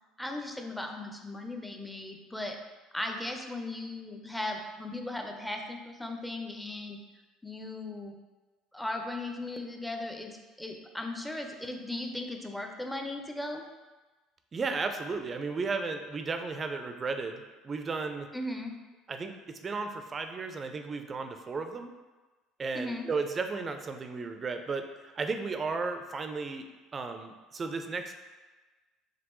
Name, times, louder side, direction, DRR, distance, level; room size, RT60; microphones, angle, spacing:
voice 1, 0.2-2.6 2.9-7.0 7.4-8.1 8.7-13.7 18.3-18.7 22.7-23.1, left 2 dB, 5° left, 3 dB, 0.6 m, -37 dB
voice 2, 14.5-18.3 19.1-21.9 22.6-26.7 26.9-28.1, right 4 dB, 35° right, 7 dB, 0.5 m, -34 dB
5.1 x 3.0 x 3.1 m, 1.2 s
hypercardioid pair, 65°, 0 cm